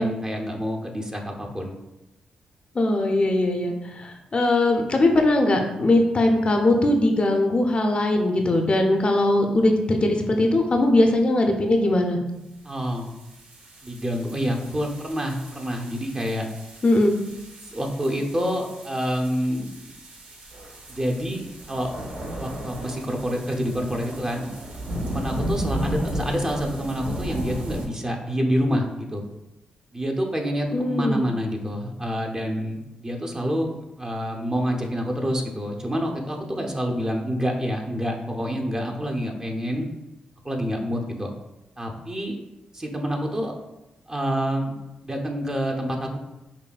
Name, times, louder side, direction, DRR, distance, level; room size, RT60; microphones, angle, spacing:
voice 1, 0.0-1.8 12.6-13.1 13.8-16.5 17.7-19.9 20.9-21.9 22.4-24.5 25.0-29.2 29.9-33.7 34.0-39.9 40.4-41.3 41.8-42.4 42.7-43.5 44.1-44.8 45.0-46.2, equal, 25° right, 1 dB, 0.7 m, -27 dB
voice 2, 2.7-12.2 16.8-17.2 30.7-31.2, left 1 dB, 40° left, 3 dB, 0.6 m, -20 dB
sound 1, 12.7-27.9, equal, 65° right, 0.9 m, -35 dB
5.5 x 2.2 x 2.4 m, 0.94 s
supercardioid pair, 55°, 3 cm